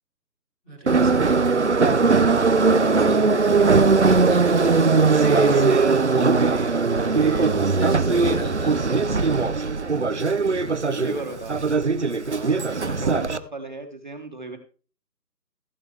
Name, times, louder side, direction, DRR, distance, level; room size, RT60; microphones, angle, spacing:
voice 1, 0.6-1.6 4.2-4.7 5.1-8.8 10.4-11.1 12.8-13.1, equal, ahead, -11 dB, 1.3 m, -37 dB
Subway metro underground, 0.9-13.4, right 4 dB, 45° right, 0.7 m, -19 dB
voice 2, 3.6-4.0 5.3-6.4 7.0-8.0 9.0-9.6 10.9-11.6 12.2-14.6, right 2 dB, 30° right, 4 dB, 1.2 m, -37 dB
16.0 x 7.8 x 3.4 m, 0.37 s
figure-of-eight pair, 170°, 50 cm